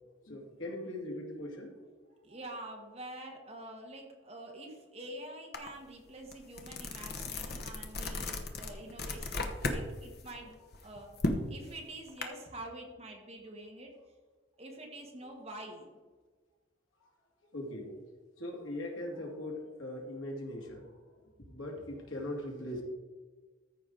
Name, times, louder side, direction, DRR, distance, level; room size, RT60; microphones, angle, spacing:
voice 1, 0.2-1.7 2.3-2.7 10.6-10.7 11.8-11.9 15.2-15.3 17.5-17.9 18.4-20.9 21.5-22.8, left 1 dB, 75° left, 0 dB, 2.3 m, -40 dB
voice 2, 2.2-11.1 11.5-14.0 14.6-15.9, right 1 dB, 30° right, 1 dB, 1.5 m, -46 dB
sound 1, 5.5-5.7 6.1-9.8 10.2-12.2, left 2 dB, 50° left, 1.0 m, -35 dB
14.0 x 5.5 x 3.9 m, 1.3 s
head